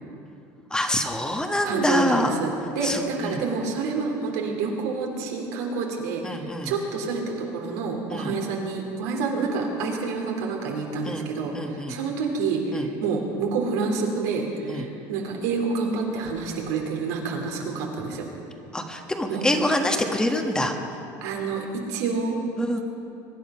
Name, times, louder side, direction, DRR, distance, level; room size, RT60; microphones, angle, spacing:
voice 1, 0.7-2.3 2.8-3.4 6.2-6.7 8.1-8.3 11.0-11.3 11.5-12.0 12.7-12.9 14.7-14.9 18.7-20.7 22.6-22.8, left 1 dB, 10° left, 3 dB, 1.4 m, -25 dB
voice 2, 1.6-18.2 19.3-19.4 21.2-22.4, right 4 dB, 85° right, 0 dB, 3.3 m, -28 dB
23.0 x 10.5 x 5.7 m, 2.8 s
supercardioid pair, 110°, 9 cm